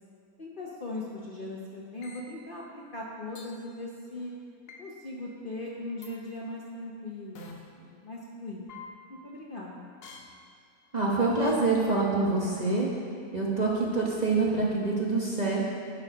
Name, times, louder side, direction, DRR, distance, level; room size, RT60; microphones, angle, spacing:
voice 1, 0.4-4.3 4.8-8.8 9.1-9.9, left 2 dB, 45° left, -3 dB, 0.8 m, -39 dB
sound 1, 2.0-2.2 3.4-3.5 4.7-4.8 6.0-6.1 7.4-7.5 8.7-8.9 10.0-10.2 11.4-11.5, left 5 dB, 85° left, 1.5 m, -45 dB
voice 2, 10.9-12.9 13.3-15.6, right 3 dB, 30° right, -4 dB, 0.9 m, -26 dB
11.0 x 4.7 x 5.0 m, 2.6 s
omnidirectional pair, 1.6 m